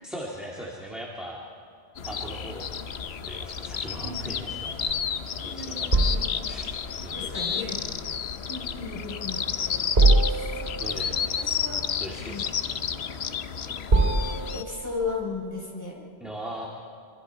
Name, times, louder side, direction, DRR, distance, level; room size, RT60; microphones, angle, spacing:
voice 1, 0.0-1.4 2.1-2.8 3.2-5.1 5.4-6.7 7.0-7.4 10.8-11.2 12.0-13.0 16.2-16.7, right 1 dB, ahead, -3 dB, 2.3 m, -40 dB
sound 1, 2.0-14.6, left 7 dB, 85° left, 1.1 m, -31 dB
sound 2, 2.8-15.4, right 2 dB, 75° right, 3.1 m, -27 dB
voice 2, 5.4-6.4 7.1-8.1 8.5-10.1 11.1-11.8 12.2-12.4 13.7-13.8 14.5-16.0, left 4 dB, 15° left, -3 dB, 4.7 m, -36 dB
25.5 x 25.5 x 4.6 m, 2.4 s
omnidirectional pair, 1.0 m